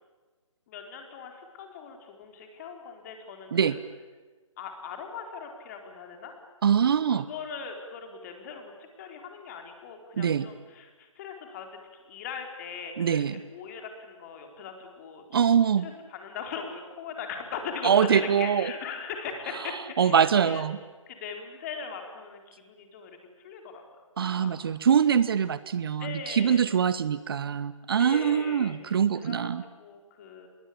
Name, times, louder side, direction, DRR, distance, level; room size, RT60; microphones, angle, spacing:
voice 1, 0.7-3.8 4.6-6.3 7.1-11.7 12.1-13.2 13.5-15.2 15.8-20.6 21.1-23.8 24.2-24.6 26.0-26.7 28.0-28.7 29.2-29.5 29.8-30.5, left 6 dB, 30° left, 4 dB, 4.2 m, -40 dB
voice 2, 6.6-7.3 10.2-10.5 13.0-13.4 15.3-15.9 17.8-18.7 19.5-20.8 24.2-29.6, right 7 dB, 45° right, 16 dB, 0.9 m, -24 dB
26.0 x 21.5 x 8.6 m, 1.3 s
figure-of-eight pair, 145°, 17 cm